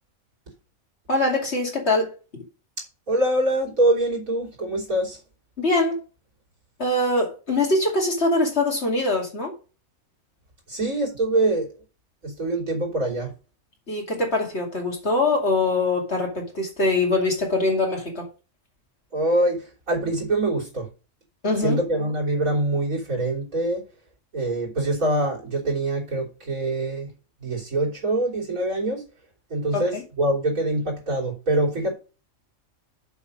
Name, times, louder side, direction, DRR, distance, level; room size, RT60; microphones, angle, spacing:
voice 1, 1.1-2.1 5.6-6.0 6.8-9.5 13.9-18.3 21.4-21.8 29.7-30.0, left 2 dB, 50° left, 2.7 m, -23 dB
voice 2, 3.1-5.2 10.7-11.7 12.2-13.3 19.1-19.6 19.9-20.9 21.6-23.8 24.3-27.1 27.4-29.0 29.5-31.9, right 1 dB, 75° right, 3.8 m, -24 dB
7.1 x 5.7 x 5.1 m
omnidirectional pair, 1.4 m